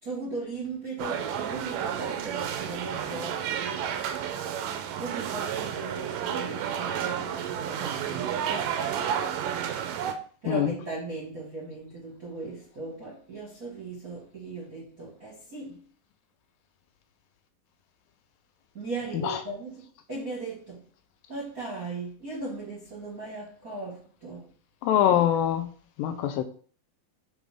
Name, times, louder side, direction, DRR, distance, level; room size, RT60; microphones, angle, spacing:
voice 1, 0.0-3.9 4.9-8.8 10.4-15.8 18.7-19.8 20.1-20.8 21.3-24.4, right 3 dB, 40° right, 1.2 m, -37 dB
sound 1, 1.0-10.1, right 9 dB, 80° right, 2.1 m, -31 dB
voice 2, 24.8-25.7 26.0-26.4, left 10 dB, 80° left, 2.2 m, -23 dB
9.4 x 4.0 x 3.5 m
omnidirectional pair, 4.2 m